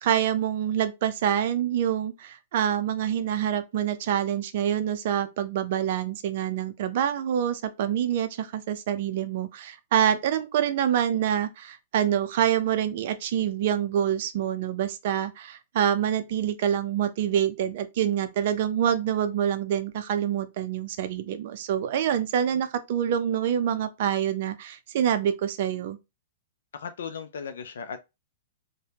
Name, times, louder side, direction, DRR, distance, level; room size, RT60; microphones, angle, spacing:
voice 1, 0.0-26.0, right 9 dB, 55° right, 0.4 m, -26 dB
voice 2, 26.7-28.0, left 6 dB, 75° left, 0.3 m, -36 dB
3.3 x 2.1 x 2.8 m
hypercardioid pair, 130°, 0 cm